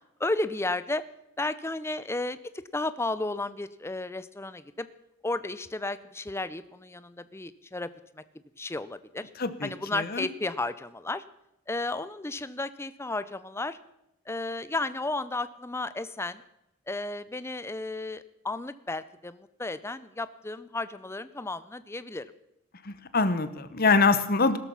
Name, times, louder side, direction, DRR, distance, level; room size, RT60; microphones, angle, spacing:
voice 1, 0.2-1.0 1.4-4.9 5.2-8.2 8.6-9.3 9.6-11.2 11.7-13.8 14.3-16.4 16.9-22.3, left 2 dB, 10° left, 14 dB, 0.5 m, -33 dB
voice 2, 9.4-10.3 22.8-24.6, left 4 dB, 45° left, 12 dB, 1.0 m, -24 dB
17.0 x 13.0 x 5.7 m, 0.84 s
head